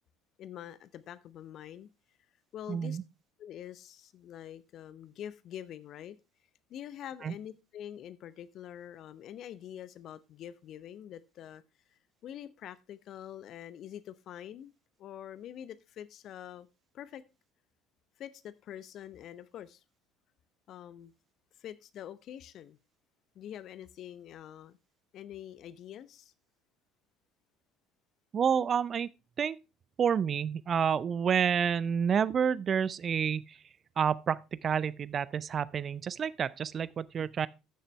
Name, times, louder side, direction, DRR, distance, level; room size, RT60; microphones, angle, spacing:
voice 1, 0.4-1.9 2.5-3.0 3.4-6.2 6.7-11.6 12.2-14.7 15.0-16.7 16.9-17.2 18.2-19.8 20.7-21.1 21.6-22.8 23.4-24.8 25.1-26.3, left 10 dB, 50° left, 0.7 m, -45 dB
voice 2, 2.7-3.0 7.2-7.3 28.3-29.1 29.4-29.6 30.0-33.6 34.0-37.5, right 7 dB, 40° right, 0.5 m, -29 dB
13.5 x 6.7 x 3.3 m
figure-of-eight pair, 60°, 0 cm